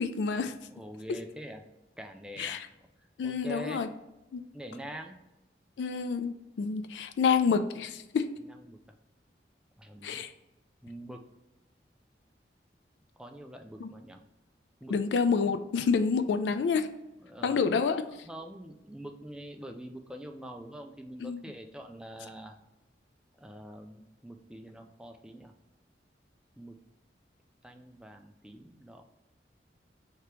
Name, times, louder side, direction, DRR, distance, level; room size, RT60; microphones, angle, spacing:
voice 1, 0.0-0.5 2.4-2.7 3.2-3.9 4.3-4.4 5.8-8.3 10.0-10.3 13.8-13.9 14.9-16.9 17.4-18.0 21.2-21.4, left 5 dB, 85° left, 9 dB, 0.3 m, -28 dB
voice 2, 0.7-1.6 2.0-2.6 3.2-3.8 4.5-5.2 8.4-8.8 9.8-10.2 10.8-11.2 13.2-14.2 14.8-15.0 17.2-17.8 18.3-22.5 23.4-25.5 26.6-26.8 27.6-29.0, equal, 5° right, 4 dB, 0.3 m, -44 dB
3.3 x 2.9 x 4.5 m, 0.96 s
head